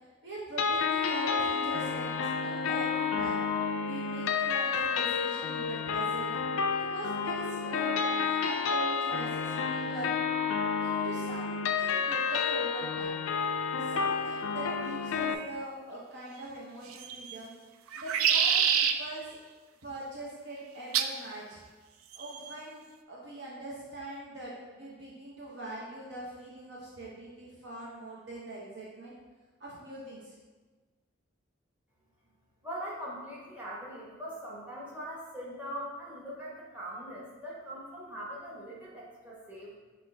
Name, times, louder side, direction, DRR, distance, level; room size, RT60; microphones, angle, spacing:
voice 1, 0.0-3.4 3.8-6.4 6.7-10.1 10.8-13.2 13.7-17.5 18.0-19.4 19.8-21.6 22.1-29.1 29.6-30.4, right 1 dB, 55° right, -5 dB, 0.8 m, -42 dB
sound 1, 0.6-15.3, left 5 dB, 80° left, 0.3 m, -30 dB
sound 2, 16.9-17.4 17.9-19.0 20.9-21.2 22.1-22.5, right 8 dB, 85° right, 0.3 m, -26 dB
voice 2, 32.6-39.8, equal, 10° right, -7 dB, 1.0 m, -41 dB
6.0 x 2.5 x 3.3 m, 1.3 s
head